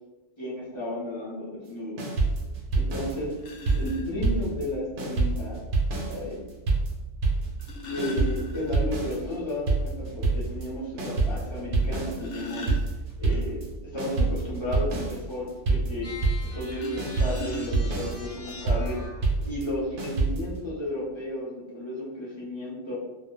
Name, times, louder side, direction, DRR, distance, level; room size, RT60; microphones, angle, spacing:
voice 1, 0.4-2.0 2.7-3.3 3.8-5.6 6.1-6.4 7.9-12.7 13.2-16.1 16.4-19.0 19.4-23.0, left 1 dB, 35° left, -7 dB, 0.5 m, -33 dB
sound 1, 2.0-4.7 5.0-20.6, right 3 dB, 70° right, 0.8 m, -27 dB
sound 2, 2.7-2.8 3.4-4.0 5.4-5.5 7.3-9.1 9.4-9.5 9.9-10.0 10.5-10.6 11.8-13.4 16.7-18.1 18.9-19.0 19.4-19.6, left 1 dB, 85° left, 0.9 m, -38 dB
sound 3, 16.0-19.3, left 2 dB, 55° left, 0.8 m, -42 dB
2.1 x 2.1 x 3.0 m, 1.1 s
omnidirectional pair, 1.2 m